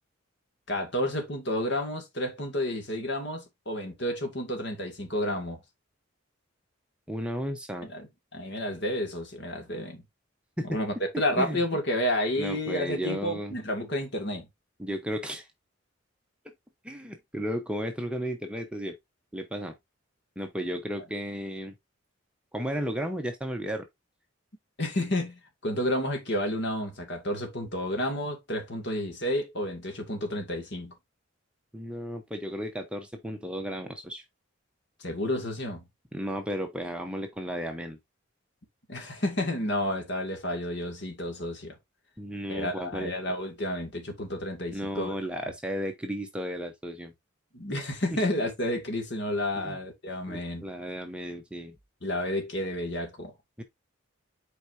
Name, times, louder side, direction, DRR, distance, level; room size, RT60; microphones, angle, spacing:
voice 1, 0.7-5.6 7.8-8.1 8.3-10.0 10.6-14.5 24.8-30.9 35.0-35.8 38.9-41.8 42.5-45.1 47.5-50.7 52.0-53.3, left 1 dB, 55° left, 2.1 m, -31 dB
voice 2, 7.1-7.9 10.6-10.8 11.4-11.6 12.4-13.6 14.8-15.5 16.8-19.0 19.3-19.7 20.4-21.7 22.5-23.9 31.7-34.2 36.1-38.0 42.2-43.1 44.7-47.1 49.5-49.8 50.3-51.7 53.6-53.7, equal, 5° right, 0.8 m, -34 dB
7.9 x 4.6 x 2.7 m
head